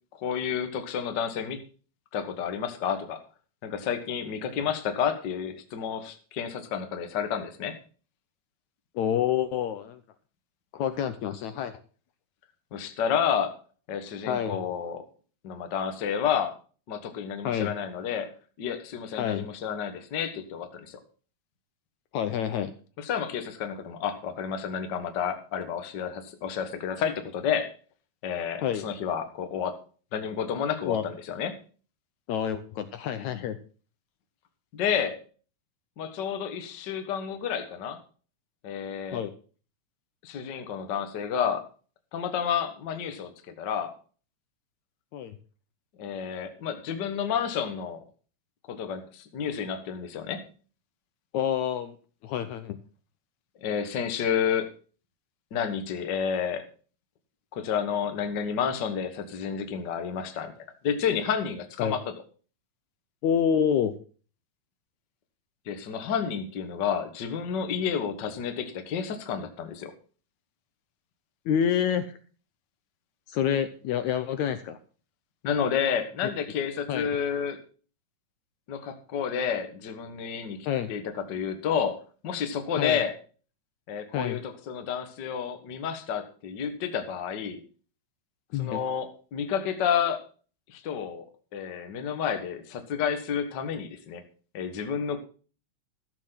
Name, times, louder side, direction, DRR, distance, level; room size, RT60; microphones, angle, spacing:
voice 1, 0.2-1.6 2.1-3.2 3.6-7.7 12.7-13.6 13.9-15.0 15.4-16.5 16.9-18.3 18.6-21.0 23.0-27.7 28.2-29.8 30.1-31.5 34.7-35.2 36.0-38.0 38.6-39.2 40.2-41.6 42.1-43.3 43.6-43.9 46.0-48.0 48.7-50.4 53.6-54.7 55.5-56.6 57.5-60.5 60.8-62.0 65.7-69.9 75.4-77.6 78.7-81.0 81.3-82.0 82.2-83.1 83.9-87.6 88.6-90.2 90.7-91.2 91.5-94.2 94.5-95.2, left 7 dB, 50° left, 7 dB, 1.3 m, -30 dB
voice 2, 9.0-10.0 10.7-11.8 14.3-14.6 17.4-17.7 19.2-19.5 22.1-22.7 28.6-28.9 30.9-31.0 32.3-33.6 39.1-39.3 45.1-45.4 51.3-52.0 52.2-52.8 61.8-62.0 63.2-63.9 71.5-72.2 73.3-74.8 76.9-77.1 80.7-80.9 82.8-83.0 84.1-84.4 88.5-88.8, left 9 dB, 75° left, 9 dB, 1.9 m, -27 dB
13.5 x 7.3 x 5.8 m, 0.40 s
omnidirectional pair, 3.8 m